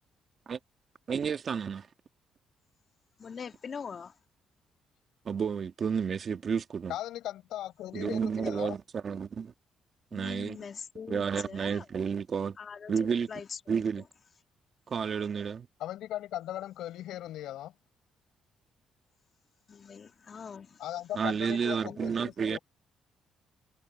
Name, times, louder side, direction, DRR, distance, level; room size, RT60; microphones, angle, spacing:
voice 1, 1.1-1.9 5.2-6.9 7.9-9.5 10.1-10.6 11.1-12.6 12.9-13.3 13.7-14.0 14.9-15.7 21.1-22.6, right 6 dB, 50° right, 1.6 m, -31 dB
voice 2, 3.2-4.1 10.1-11.8 12.6-13.9 19.7-20.8 21.8-22.0, left 6 dB, 45° left, 2.9 m, -43 dB
voice 3, 6.9-8.7 15.8-17.7 20.8-22.6, left 13 dB, 85° left, 6.6 m, -38 dB
cardioid pair, 90°, 0 cm